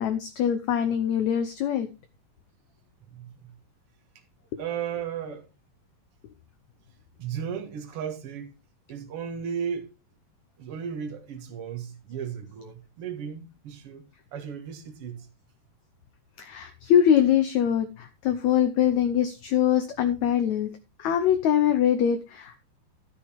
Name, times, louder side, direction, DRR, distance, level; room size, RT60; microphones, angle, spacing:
voice 1, 0.0-1.9 16.4-20.7 21.0-22.6, left 9 dB, 70° left, 1.8 m, -23 dB
voice 2, 3.1-3.6 4.6-5.5 7.2-8.6 8.9-9.9 10.6-14.0 14.3-15.3, right 7 dB, 50° right, 2.2 m, -35 dB
12.5 x 8.7 x 3.5 m
omnidirectional pair, 4.0 m